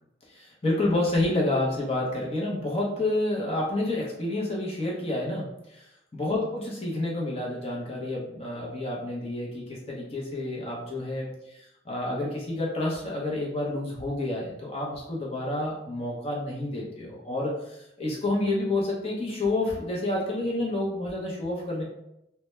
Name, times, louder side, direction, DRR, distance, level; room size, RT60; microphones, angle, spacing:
voice 1, 0.3-5.9 6.1-21.8, left 2 dB, 35° left, -4 dB, 0.6 m, -29 dB
2.1 x 2.1 x 3.0 m, 0.84 s
head